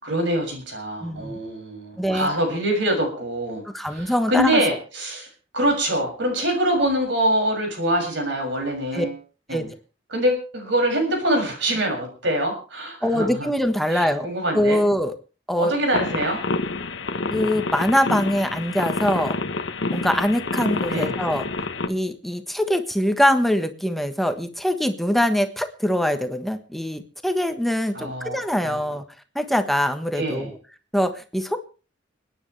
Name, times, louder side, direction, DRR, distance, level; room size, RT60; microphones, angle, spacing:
voice 1, 0.0-5.3 5.5-9.1 9.5-9.7 10.1-13.5 13.9-14.8 15.6-16.4 20.9-21.1 27.9-28.4 28.6-28.8 30.1-30.5, right 1 dB, 70° right, 2 dB, 6.7 m, -24 dB
voice 2, 1.0-1.4 2.0-2.3 3.7-4.6 8.9-9.0 9.5-9.6 13.0-14.3 14.5-15.1 15.5-15.7 17.3-19.4 19.9-21.5 21.9-29.0 29.3-30.6 30.9-31.6, equal, ahead, 7 dB, 1.3 m, -23 dB
sound 1, 15.9-21.9, left 3 dB, 70° left, 1.1 m, -28 dB
29.5 x 10.0 x 3.3 m, 0.36 s
head